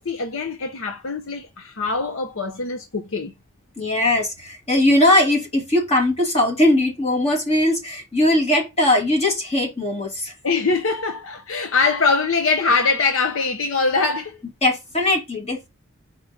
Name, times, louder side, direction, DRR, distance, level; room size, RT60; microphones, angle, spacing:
voice 1, 0.0-3.3 10.4-14.4, left 4 dB, 70° left, 0.8 m, -22 dB
voice 2, 3.8-10.3 14.6-15.7, left 1 dB, 30° left, 2.5 m, -20 dB
4.9 x 4.2 x 5.1 m
head